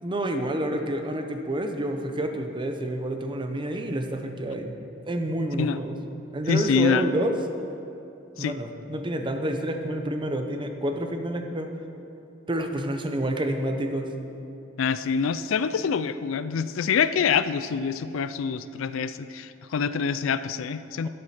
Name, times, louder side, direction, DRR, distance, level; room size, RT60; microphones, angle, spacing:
voice 1, 0.0-4.7 5.0-6.0 6.3-7.4 8.4-11.7 12.5-14.1, right 1 dB, 25° right, 5 dB, 0.8 m, -28 dB
voice 2, 6.5-7.0 8.4-8.6 14.8-21.1, left 6 dB, 90° left, 13 dB, 0.4 m, -26 dB
12.0 x 7.8 x 5.7 m, 2.8 s
head